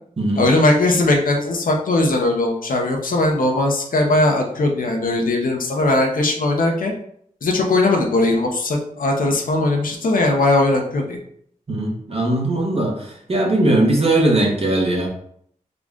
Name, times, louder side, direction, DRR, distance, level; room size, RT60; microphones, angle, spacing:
voice 1, 0.4-6.9 7.4-11.2, left 2 dB, 70° left, 2 dB, 0.8 m, -19 dB
voice 2, 11.7-15.1, right 1 dB, 40° right, -2 dB, 1.3 m, -19 dB
3.8 x 2.3 x 3.6 m, 0.65 s
cardioid pair, 50°, 15 cm